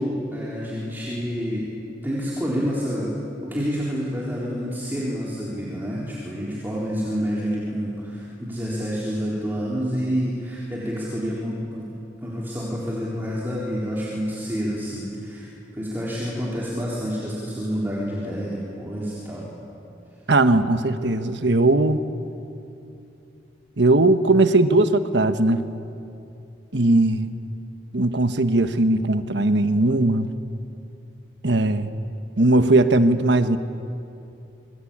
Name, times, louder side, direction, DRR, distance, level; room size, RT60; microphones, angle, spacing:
voice 1, 0.0-1.7 2.0-3.1 3.4-11.9 12.2-19.5, equal, 10° right, -6 dB, 3.9 m, -28 dB
voice 2, 20.3-22.0 23.8-25.6 26.7-27.3 27.9-30.3 31.4-31.9 32.4-33.6, right 2 dB, 75° right, 9 dB, 1.3 m, -19 dB
27.0 x 23.5 x 8.8 m, 2.7 s
head